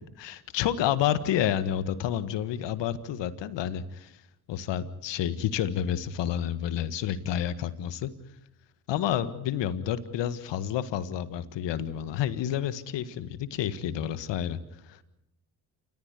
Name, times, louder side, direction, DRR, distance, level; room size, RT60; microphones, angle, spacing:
voice 1, 0.2-4.1 4.5-8.1 8.9-14.6 14.9-15.0, left 10 dB, 70° left, 13 dB, 1.7 m, -29 dB
29.0 x 14.5 x 8.3 m, 0.88 s
hypercardioid pair, 55°, 45 cm